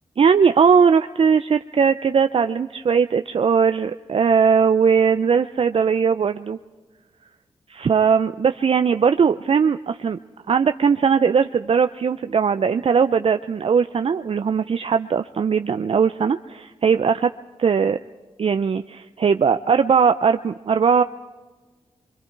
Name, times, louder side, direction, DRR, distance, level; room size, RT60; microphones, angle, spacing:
voice 1, 0.2-6.6 7.7-10.2 10.5-17.3 17.6-18.0 18.4-21.0, right 6 dB, 55° right, 10 dB, 0.5 m, -19 dB
25.0 x 24.0 x 4.6 m, 1.3 s
supercardioid pair, 40°, 12 cm